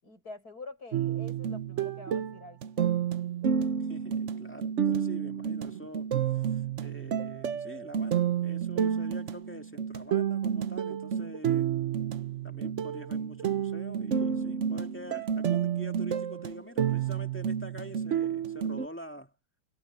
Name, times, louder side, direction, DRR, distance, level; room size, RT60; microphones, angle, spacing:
voice 1, 0.0-2.9, left 3 dB, 45° left, 8.2 m, -46 dB
sound 1, 0.9-18.9, right 8 dB, 60° right, 0.8 m, -30 dB
voice 2, 3.9-11.7 12.4-19.3, equal, 5° left, 1.7 m, -45 dB
omnidirectional pair, 2.3 m